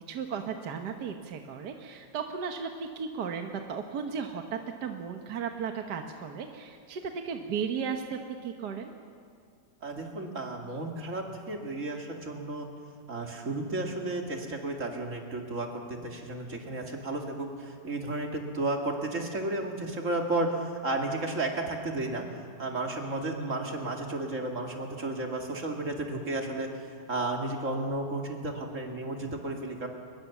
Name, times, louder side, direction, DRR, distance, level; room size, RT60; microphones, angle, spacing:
voice 1, 0.1-8.9, right 6 dB, 65° right, 5 dB, 1.7 m, -35 dB
voice 2, 9.8-12.7 13.1-22.3 22.6-29.9, right 2 dB, 45° right, 2 dB, 2.6 m, -33 dB
23.5 x 21.0 x 7.2 m, 2.3 s
omnidirectional pair, 2.0 m